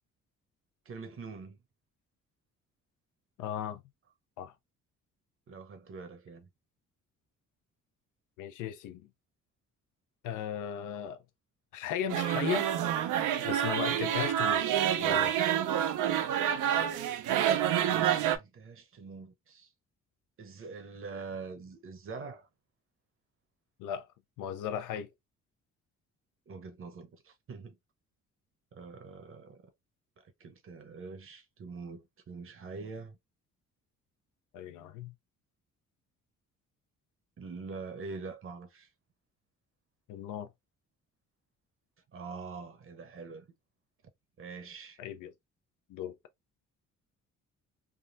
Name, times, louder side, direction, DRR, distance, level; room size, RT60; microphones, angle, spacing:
voice 1, 0.9-1.6 5.5-6.5 17.9-19.7 20.4-22.5 26.5-27.7 28.7-29.6 30.4-33.2 37.4-38.9 42.1-43.4 44.4-45.0, right 4 dB, 45° right, 0.8 m, -44 dB
voice 2, 3.4-3.8 4.4-4.5 8.4-9.1 10.2-11.2 11.7-12.7 13.4-15.4 23.8-24.1 24.4-25.1 34.5-35.1 40.1-40.5 45.0-45.3 45.9-46.2, left 9 dB, 85° left, 0.6 m, -36 dB
sound 1, 12.1-18.4, right 10 dB, 80° right, 0.5 m, -28 dB
3.6 x 2.1 x 2.4 m
cardioid pair, 90°, 30 cm